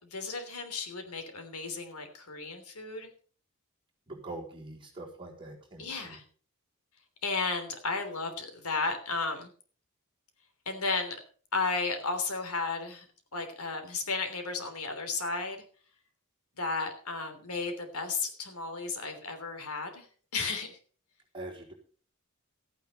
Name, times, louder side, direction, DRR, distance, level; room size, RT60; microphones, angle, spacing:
voice 1, 0.1-3.1 5.8-6.2 7.2-9.5 10.6-11.2 11.5-13.1 13.3-15.6 16.6-20.1 20.3-20.8, left 4 dB, 90° left, 7 dB, 3.3 m, -33 dB
voice 2, 4.1-6.2 21.3-21.7, right 2 dB, 25° right, -2 dB, 4.3 m, -43 dB
14.5 x 9.3 x 5.5 m, 0.42 s
head